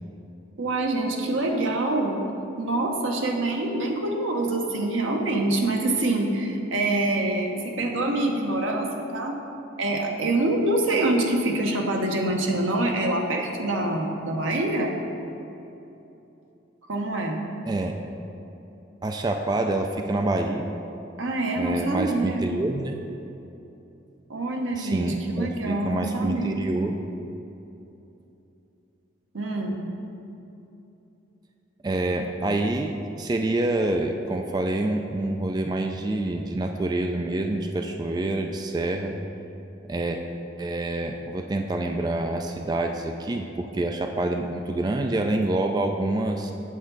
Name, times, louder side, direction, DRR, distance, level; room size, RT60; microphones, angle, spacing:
voice 1, 0.6-2.2 2.6-9.3 9.8-15.0 16.9-17.4 21.2-22.4 24.3-26.6 29.3-29.8, right 2 dB, 85° right, 2 dB, 0.9 m, -25 dB
voice 2, 17.7-18.0 19.0-20.7 21.5-23.0 24.8-27.0 31.8-39.2 39.9-40.2 40.6-46.5, right 2 dB, 20° right, 4 dB, 0.3 m, -27 dB
8.6 x 7.1 x 3.9 m, 2.9 s
head